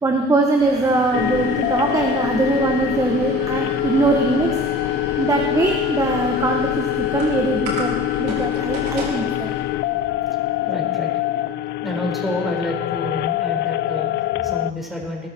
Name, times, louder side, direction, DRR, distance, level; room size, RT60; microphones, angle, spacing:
voice 1, 0.0-4.6 5.2-9.5, right 2 dB, 20° right, 2 dB, 1.3 m, -21 dB
sound 1, 0.6-10.9, right 2 dB, 85° right, 4.0 m, -36 dB
sound 2, 1.1-14.7, left 16 dB, 75° left, 0.4 m, -24 dB
voice 2, 10.3-11.4 11.8-15.3, left 1 dB, ahead, -1 dB, 4.4 m, -29 dB
20.5 x 13.0 x 4.4 m, 1.6 s
cardioid pair, 110°, 17 cm